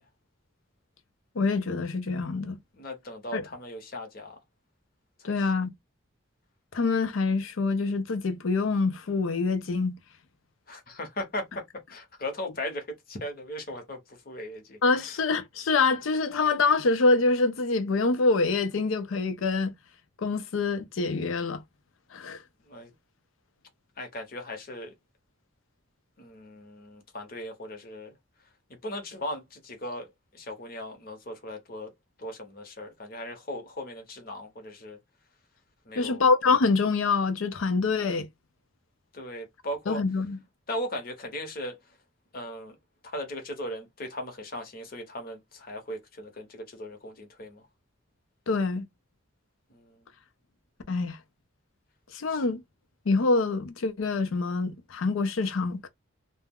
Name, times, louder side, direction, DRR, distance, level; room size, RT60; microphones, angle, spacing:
voice 1, 1.4-2.6 3.3-3.5 5.2-5.7 6.7-10.0 14.8-19.7 20.2-21.6 22.1-22.4 36.0-38.3 39.9-40.4 48.5-48.9 50.9-51.2 52.1-52.6 53.1-55.9, left 3 dB, 90° left, 0.5 m, -25 dB
voice 2, 2.7-4.4 10.7-11.6 11.9-15.1 22.7-22.9 24.0-24.9 26.2-28.1 28.8-31.9 32.2-35.0 35.9-36.2 39.1-40.0 40.7-41.8 42.3-42.7 43.1-47.6 49.7-49.9 52.3-52.4, left 1 dB, 45° left, 0.8 m, -38 dB
2.3 x 2.0 x 3.4 m
head